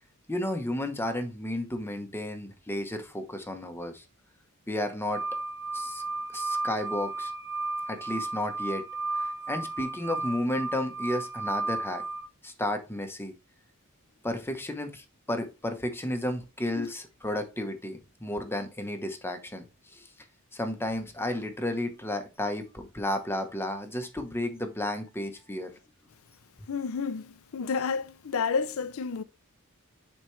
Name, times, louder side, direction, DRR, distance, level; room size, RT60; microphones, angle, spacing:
voice 1, 0.3-4.0 4.7-5.2 5.7-6.0 6.3-7.3 7.9-8.9 9.1-12.0 12.4-13.3 14.2-19.6 19.9-20.1 20.5-25.7, left 1 dB, 10° left, 1.0 m, -32 dB
sound 1, 5.1-12.2, right 3 dB, 60° right, 1.7 m, -33 dB
voice 2, 26.7-29.2, left 5 dB, 70° left, 0.5 m, -30 dB
9.9 x 4.4 x 3.2 m
head